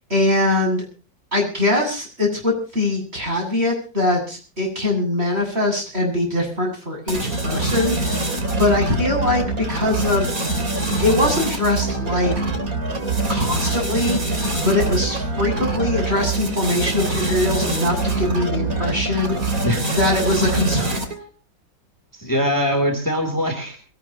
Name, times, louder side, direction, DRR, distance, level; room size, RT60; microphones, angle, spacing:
voice 1, 0.1-0.8 1.3-10.3 11.0-12.3 13.3-20.9, left 2 dB, 30° right, 1 dB, 8.4 m, -22 dB
sound 1, 7.1-21.3, right 2 dB, 50° right, 3.3 m, -24 dB
voice 2, 19.6-20.0 22.1-23.8, equal, 10° left, 4 dB, 3.1 m, -22 dB
22.0 x 19.0 x 3.0 m, 0.36 s
omnidirectional pair, 2.0 m